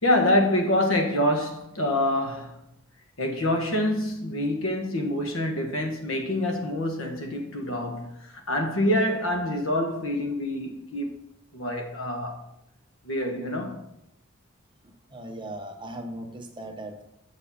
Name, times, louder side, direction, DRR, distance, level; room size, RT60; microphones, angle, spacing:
voice 1, 0.0-2.6 3.2-11.1 11.5-12.4 13.0-14.0, left 1 dB, 80° left, 1.4 m, -26 dB
voice 2, 14.8-17.0, right 1 dB, 25° right, 1.0 m, -38 dB
7.0 x 6.7 x 5.7 m
head